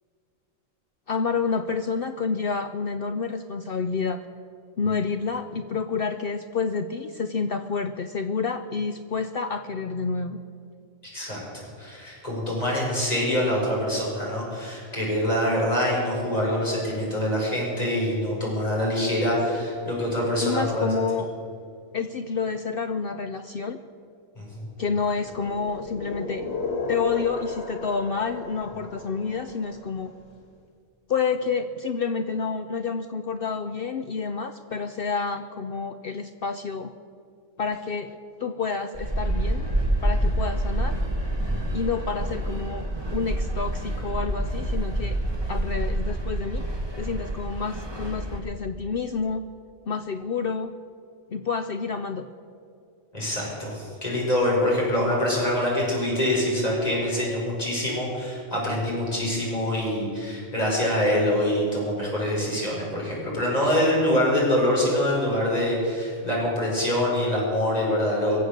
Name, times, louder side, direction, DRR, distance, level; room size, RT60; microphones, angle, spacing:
voice 1, 1.1-4.2 4.8-10.4 20.4-21.3 21.9-23.8 24.8-26.4 26.9-30.1 31.1-36.9 37.6-39.7 40.0-41.0 41.7-45.2 45.5-46.6 47.0-49.5 49.9-50.7 51.3-52.3, left 5 dB, 60° left, 9 dB, 0.7 m, -29 dB
voice 2, 11.1-21.0 24.4-24.7 41.5-41.6 53.1-68.4, left 1 dB, 30° left, -5 dB, 5.3 m, -25 dB
sound 1, 25.1-30.0, left 2 dB, 80° left, 1.9 m, -34 dB
sound 2, 38.9-48.4, right 1 dB, 20° right, 2.1 m, -27 dB
23.5 x 8.0 x 6.5 m, 2.4 s
omnidirectional pair, 1.3 m